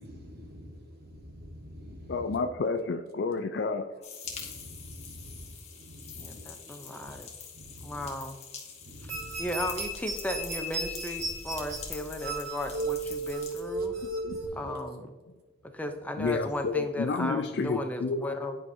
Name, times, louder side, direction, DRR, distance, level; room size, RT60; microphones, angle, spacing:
voice 1, 0.0-2.3 4.2-7.2 7.6-8.1 8.8-9.4 14.2-14.7, equal, 50° right, 1.3 m, -47 dB
voice 2, 2.1-3.9 14.2-14.4 16.2-18.3, left 4 dB, 60° left, 0.4 m, -30 dB
sound 1, 4.0-13.6, left 6 dB, 35° left, 1.3 m, -45 dB
voice 3, 6.2-7.3 7.8-8.4 9.0-9.1 9.4-14.0 14.5-15.2 15.7-18.6, left 1 dB, 10° left, 0.5 m, -35 dB
sound 2, 9.1-14.5, right 2 dB, 80° right, 2.0 m, -34 dB
10.5 x 4.8 x 2.7 m
head